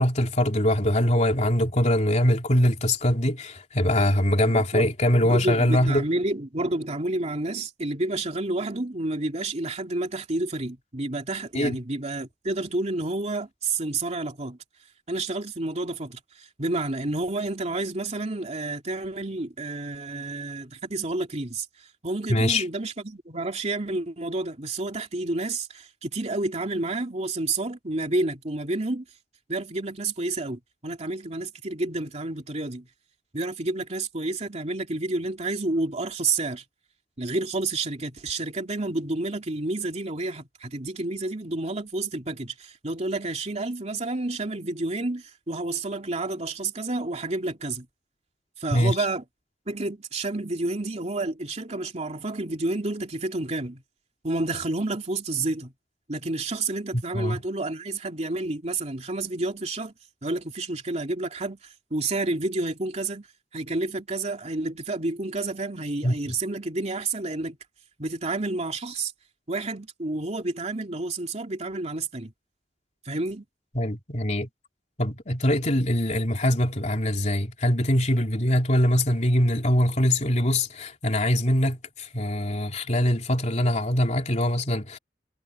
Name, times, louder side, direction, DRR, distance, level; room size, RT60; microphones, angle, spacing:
voice 1, 0.0-6.0 11.5-11.8 22.3-22.6 48.7-49.0 57.1-57.4 66.0-66.4 73.7-74.5 75.0-85.0, left 1 dB, 40° left, 3.3 m, -23 dB
voice 2, 4.5-4.9 5.1-14.6 15.1-21.7 22.0-29.0 29.5-32.9 33.3-36.6 37.2-47.9 48.6-49.2 49.7-53.8 54.2-55.7 56.1-59.9 60.2-61.6 61.9-63.3 63.5-67.6 68.0-69.1 69.5-72.3 73.0-73.4, right 2 dB, 40° right, 2.9 m, -30 dB
head